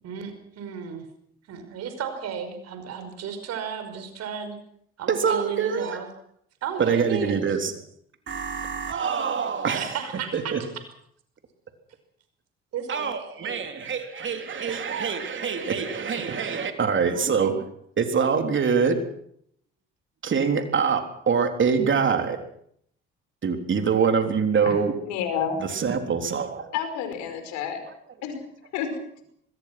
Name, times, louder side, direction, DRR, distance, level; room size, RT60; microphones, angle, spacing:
voice 1, 0.0-1.1 1.5-4.6 5.0-6.1 6.6-7.5 9.7-10.6 12.7-13.7 17.1-17.5, right 7 dB, 60° right, 8 dB, 5.5 m, -34 dB
voice 2, 5.1-6.0 6.8-7.7 8.3-9.9 10.3-10.6 12.9-17.6 18.0-19.0 20.2-22.4 23.4-24.9 25.6-26.7, right 6 dB, 40° right, 6 dB, 3.7 m, -24 dB
voice 3, 25.1-25.6 26.7-27.8 28.2-28.4 28.7-29.0, left 8 dB, 70° left, 8 dB, 5.1 m, -29 dB
25.0 x 21.0 x 6.1 m, 0.68 s
hypercardioid pair, 55°, 30 cm